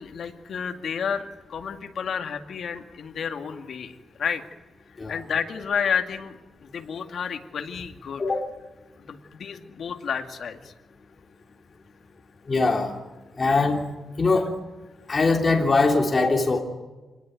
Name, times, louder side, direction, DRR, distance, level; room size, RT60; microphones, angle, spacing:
voice 1, 0.0-4.4 5.1-6.4 6.6-8.2 9.0-10.7, left 7 dB, 65° left, 5 dB, 2.3 m, -31 dB
voice 2, 12.5-13.0 13.4-13.9 14.2-14.5 15.1-16.6, left 3 dB, 30° left, 1 dB, 3.3 m, -21 dB
26.5 x 20.0 x 9.4 m, 1.2 s
wide cardioid pair, 120°, 0 cm